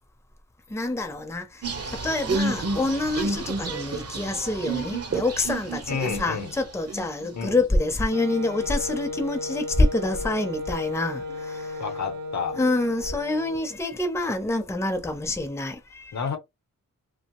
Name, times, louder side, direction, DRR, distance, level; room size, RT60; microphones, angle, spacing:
voice 1, 0.7-11.8 12.6-16.1, left 2 dB, 10° left, 0.6 m, -27 dB
sound 1, 1.6-6.5 6.9-7.3, right 3 dB, 50° right, 0.8 m, -30 dB
voice 2, 5.9-6.5 7.3-7.6 11.8-12.6 16.1-16.4, left 6 dB, 60° left, 0.7 m, -30 dB
Wind instrument woodwind instrument, 8.1-13.8, left 2 dB, 85° right, 0.6 m, -34 dB
2.9 x 2.0 x 2.9 m
wide cardioid pair, 120°, 32 cm